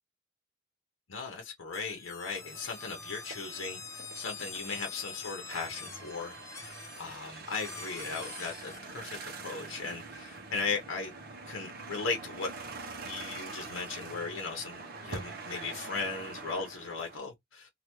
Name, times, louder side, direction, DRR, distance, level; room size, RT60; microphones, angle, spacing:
voice 1, 1.1-9.2 9.4-11.1 11.5-12.5 13.1-17.7, left 4 dB, 80° left, 0.7 m, -37 dB
sound 1, 1.7-8.8, left 5 dB, 15° left, 0.4 m, -46 dB
sound 2, 2.3-17.2, right 3 dB, 50° right, 0.7 m, -45 dB
3.3 x 2.2 x 2.9 m
head